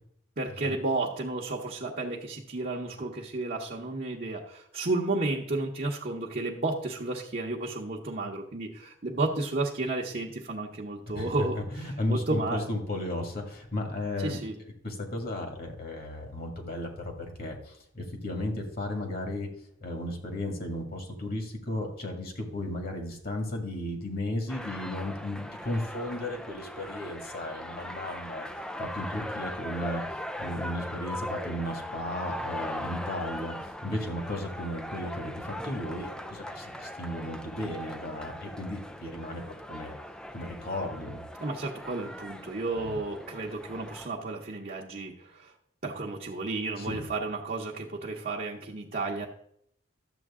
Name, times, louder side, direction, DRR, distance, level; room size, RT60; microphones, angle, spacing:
voice 1, 0.4-11.6 12.1-12.6 14.2-14.6 41.4-45.5 45.8-49.3, right 2 dB, 45° right, -2 dB, 0.9 m, -32 dB
voice 2, 11.2-14.4 14.8-19.5 19.8-28.5 28.8-30.0 30.4-33.5 33.8-40.0 40.3-41.2 42.8-43.0 46.8-47.0, left 1 dB, 45° left, 3 dB, 2.0 m, -34 dB
sound 1, 24.5-44.1, left 1 dB, 5° left, 0.3 m, -40 dB
12.0 x 7.7 x 3.7 m, 0.70 s
head